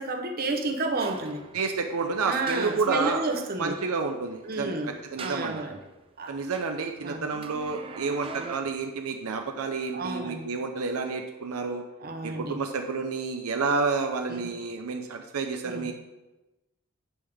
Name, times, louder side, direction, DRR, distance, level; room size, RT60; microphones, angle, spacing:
voice 1, 0.0-1.4 2.3-3.8 4.4-4.9 5.2-5.8 6.2-6.3 7.0-7.2 9.9-10.5 12.0-12.6 14.3-14.5 15.6-15.9, right 2 dB, 45° right, 5 dB, 0.9 m, -31 dB
sound 1, 0.9-3.5 4.4-5.7 6.3-8.6, right 4 dB, 25° right, 0.4 m, -43 dB
voice 2, 1.5-3.2 3.6-5.6 6.3-11.9 12.2-15.9, right 4 dB, 75° right, 5 dB, 0.6 m, -30 dB
10.0 x 5.5 x 3.5 m, 1.0 s
head